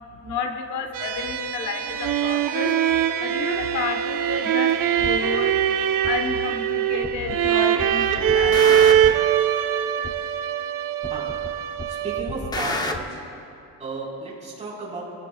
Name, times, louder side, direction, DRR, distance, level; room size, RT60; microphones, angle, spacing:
voice 1, 0.1-2.8 3.2-5.6 6.0-8.9, left 4 dB, 65° left, 5 dB, 1.2 m, -31 dB
sound 1, 0.9-12.1, right 4 dB, 70° right, 1.2 m, -34 dB
sound 2, 1.6-12.5, right 10 dB, 85° right, 0.8 m, -22 dB
sound 3, 5.0-5.2 6.0-6.1 7.0-7.5 7.8-9.3 10.0-10.1 11.0-11.5 11.8-13.0, left 2 dB, 10° left, 0.7 m, -30 dB
voice 2, 11.9-13.2 13.8-15.0, right 3 dB, 20° right, -6 dB, 4.3 m, -33 dB
25.0 x 17.5 x 2.3 m, 2.7 s
cardioid pair, 160°, 32 cm